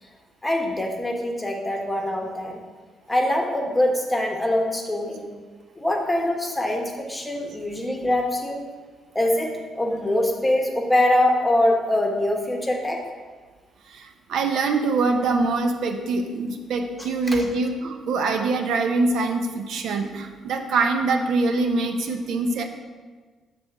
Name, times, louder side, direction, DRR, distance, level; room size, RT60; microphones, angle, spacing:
voice 1, 0.4-2.6 3.1-5.3 5.8-8.7 9.1-13.0 17.0-17.4, left 1 dB, 15° left, 1 dB, 1.0 m, -23 dB
voice 2, 13.9-22.6, right 3 dB, 75° right, 5 dB, 0.6 m, -24 dB
6.1 x 3.3 x 5.9 m, 1.4 s
cardioid pair, 90°, 0 cm